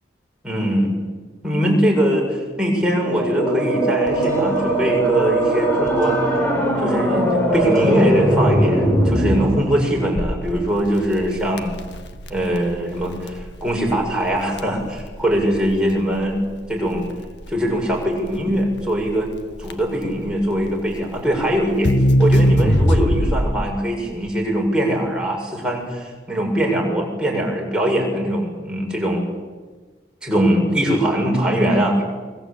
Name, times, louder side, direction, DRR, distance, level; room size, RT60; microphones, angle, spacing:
voice 1, 0.4-0.9 1.4-6.2 6.8-11.7 12.3-16.4 16.7-17.0 17.5-19.3 19.6-21.9 22.2-29.2 30.2-32.0, equal, 5° right, -1 dB, 7.2 m, -21 dB
sound 1, 3.0-9.5, right 1 dB, 10° left, 5.7 m, -20 dB
sound 2, 4.1-15.5, equal, 20° right, 6.5 m, -36 dB
Crackle, 10.1-23.7, equal, 80° left, 1.8 m, -22 dB
29.5 x 23.0 x 8.7 m, 1.4 s
head